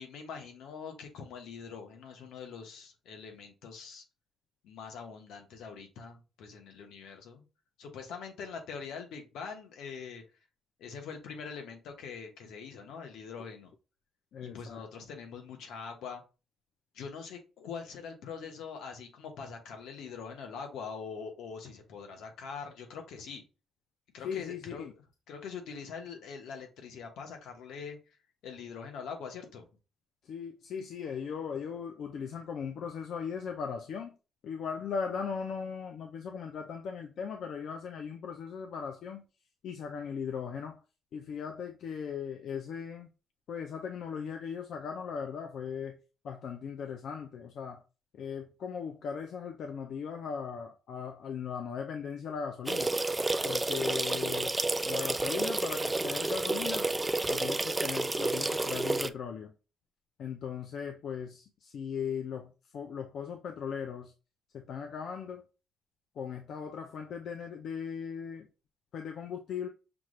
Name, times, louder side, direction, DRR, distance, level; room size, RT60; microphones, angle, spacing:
voice 1, 0.0-4.0 4.6-7.4 7.8-10.2 10.8-13.7 14.4-16.2 16.9-23.4 24.1-24.9 25.3-28.2 28.4-29.6, left 6 dB, 85° left, 1.2 m, -43 dB
voice 2, 14.3-14.8 24.2-24.9 30.3-34.1 34.4-39.2 39.6-40.8 41.1-43.1 43.5-46.0 46.2-47.8 48.1-52.9 53.4-54.6 54.8-56.9 57.3-59.5 60.2-64.1 64.5-65.4 66.2-68.5 68.9-69.7, left 6 dB, 65° left, 0.6 m, -38 dB
sound 1, 52.7-59.1, right 2 dB, 15° right, 0.3 m, -30 dB
6.0 x 2.5 x 3.1 m
cardioid pair, 120°, 0 cm